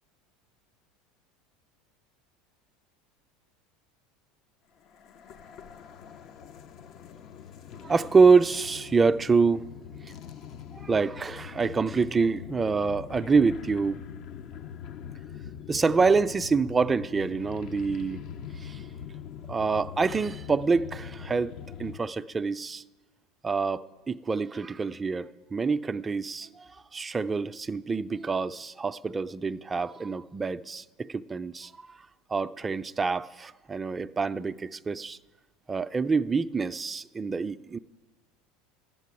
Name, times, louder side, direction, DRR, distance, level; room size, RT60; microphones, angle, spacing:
sound 1, 4.8-22.0, left 8 dB, 50° left, 0.6 m, -43 dB
voice 1, 7.8-9.7 10.7-14.0 15.7-18.2 18.6-18.8 19.5-21.5 21.8-22.8 23.4-32.0 32.3-35.2 35.7-37.8, right 4 dB, 20° right, 0.4 m, -26 dB
11.5 x 8.3 x 9.6 m
supercardioid pair, 100°, 0 cm